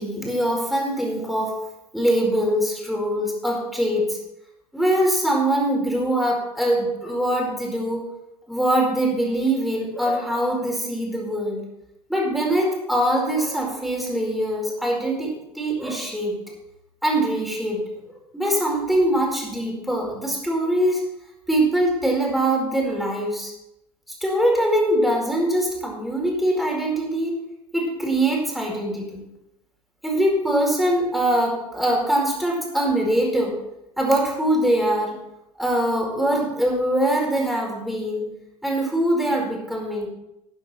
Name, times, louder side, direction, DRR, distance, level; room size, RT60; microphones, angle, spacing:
voice 1, 0.0-1.5 1.9-4.2 4.7-8.1 8.5-11.6 12.1-16.4 17.0-17.8 18.3-21.0 21.5-23.5 24.2-27.4 27.7-29.2 30.0-33.6 34.0-35.2 35.6-38.3 38.6-40.1, right 1 dB, ahead, -1 dB, 4.6 m, -23 dB
13.0 x 9.8 x 4.3 m, 0.85 s
figure-of-eight pair, 75°, 20 cm